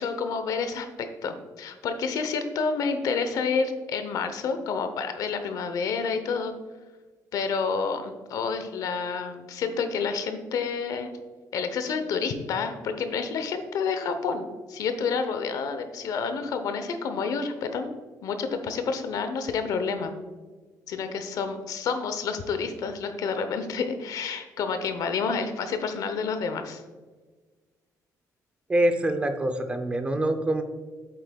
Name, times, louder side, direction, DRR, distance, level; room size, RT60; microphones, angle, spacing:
voice 1, 0.0-6.5 7.3-11.1 11.5-17.9 18.2-20.1 20.9-26.8, left 5 dB, 65° left, 8 dB, 0.7 m, -29 dB
voice 2, 28.7-30.6, right 1 dB, 15° right, 7 dB, 0.5 m, -25 dB
8.2 x 7.8 x 2.3 m, 1.3 s
cardioid pair, 170°, 7 cm